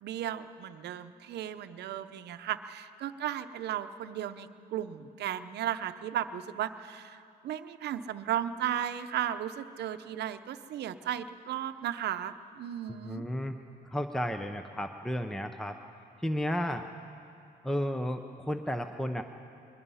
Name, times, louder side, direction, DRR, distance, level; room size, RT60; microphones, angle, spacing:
voice 1, 0.0-13.2, right 10 dB, 75° right, 10 dB, 0.8 m, -35 dB
voice 2, 12.9-13.5 13.8-15.8 16.2-16.9 17.6-19.2, equal, 5° left, 7 dB, 0.6 m, -33 dB
22.0 x 21.0 x 5.6 m, 2.6 s
cardioid pair, 140°, 18 cm